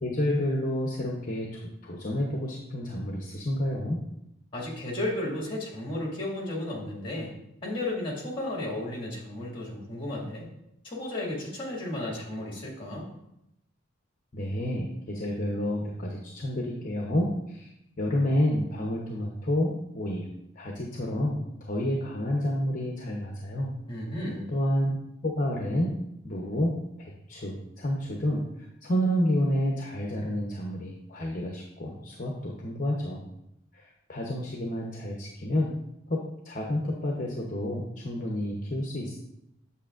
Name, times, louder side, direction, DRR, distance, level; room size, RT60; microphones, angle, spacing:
voice 1, 0.0-4.0 14.3-17.7 18.0-20.3 20.6-23.7 24.5-25.0 25.2-26.0 26.2-33.2 33.7-35.7 36.1-39.2, left 1 dB, 40° left, -1 dB, 0.8 m, -29 dB
voice 2, 4.5-7.3 7.6-10.5 10.8-13.1 23.9-24.5, left 1 dB, 25° left, -2 dB, 2.0 m, -33 dB
8.3 x 6.9 x 2.5 m, 0.82 s
head